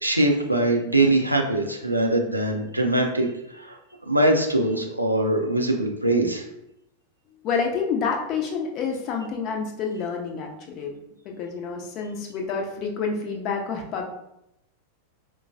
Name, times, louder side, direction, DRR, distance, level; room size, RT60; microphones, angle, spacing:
voice 1, 0.0-3.3 3.5-6.4, right 1 dB, 85° right, 2 dB, 0.5 m, -22 dB
voice 2, 7.4-10.9 11.2-14.0, left 5 dB, 40° left, 1 dB, 0.6 m, -28 dB
4.5 x 2.1 x 2.6 m, 0.83 s
figure-of-eight pair, 90°, 0 cm